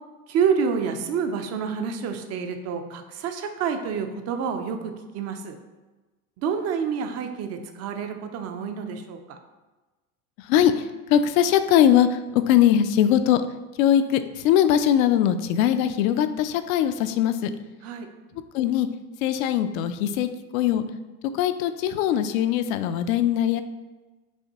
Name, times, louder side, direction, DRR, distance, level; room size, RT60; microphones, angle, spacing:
voice 1, 0.3-5.6 6.4-9.4 17.8-18.1, right 6 dB, 35° right, 7 dB, 0.5 m, -28 dB
voice 2, 10.4-13.4 13.8-17.5 18.5-18.9 19.2-20.8 21.3-23.6, left 10 dB, 60° left, 11 dB, 0.5 m, -21 dB
5.5 x 2.9 x 2.8 m, 1.2 s
hypercardioid pair, 95°, 47 cm